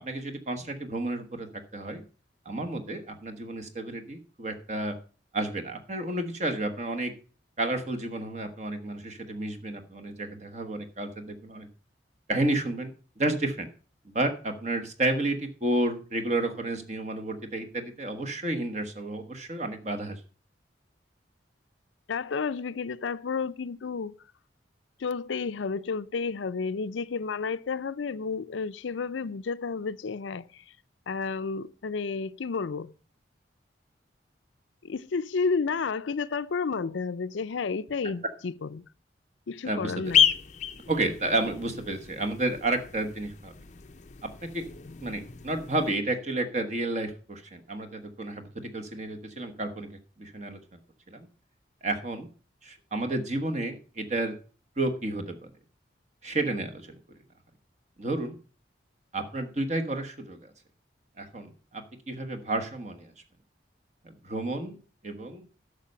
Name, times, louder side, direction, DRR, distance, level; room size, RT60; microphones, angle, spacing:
voice 1, 0.0-2.0 2.4-5.0 5.3-7.1 7.6-11.7 12.3-13.7 14.0-20.2 38.0-38.1 39.6-39.9 40.9-43.5 44.2-44.7 45.0-50.6 51.1-51.3 51.8-52.3 52.6-54.3 54.8-55.5 56.2-57.0 58.0-58.3 59.1-60.4 61.2-63.1 64.0-64.8 65.0-65.5, right 2 dB, 40° right, 1.3 m, -31 dB
voice 2, 22.1-24.2 25.0-30.6 31.1-32.9 34.8-38.8 39.5-40.3, left 5 dB, 85° left, 0.5 m, -31 dB
sound 1, 40.0-45.9, left 8 dB, 40° left, 0.5 m, -30 dB
11.5 x 6.6 x 5.5 m
head